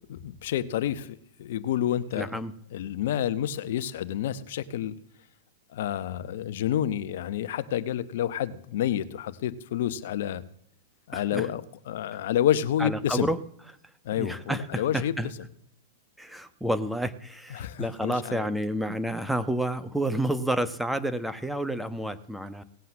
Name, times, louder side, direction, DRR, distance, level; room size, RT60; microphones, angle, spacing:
voice 1, 0.1-2.4 2.7-5.0 5.7-10.4 11.1-11.6 11.9-13.3 14.0-15.1 17.5-18.5, left 11 dB, 65° left, 14 dB, 0.9 m, -29 dB
voice 2, 2.1-2.5 11.1-11.5 12.8-13.4 14.2-15.3 16.2-22.6, right 1 dB, ahead, 11 dB, 1.1 m, -30 dB
17.5 x 7.8 x 7.5 m, 0.74 s
hypercardioid pair, 105°, 0 cm